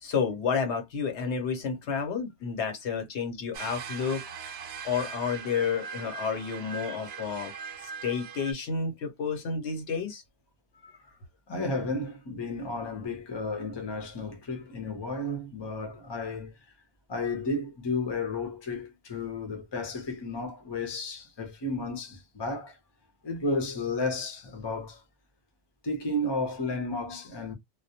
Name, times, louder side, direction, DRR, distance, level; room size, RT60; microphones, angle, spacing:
voice 1, 0.0-4.2 4.8-7.5 7.8-10.2, left 6 dB, 90° left, 1.1 m, -30 dB
sound 1, 3.5-8.5, right 6 dB, 70° right, 0.8 m, -40 dB
voice 2, 11.5-16.5 17.1-22.8 23.2-25.0 25.8-27.5, left 2 dB, 25° left, 0.7 m, -33 dB
2.2 x 2.1 x 2.7 m
omnidirectional pair, 1.1 m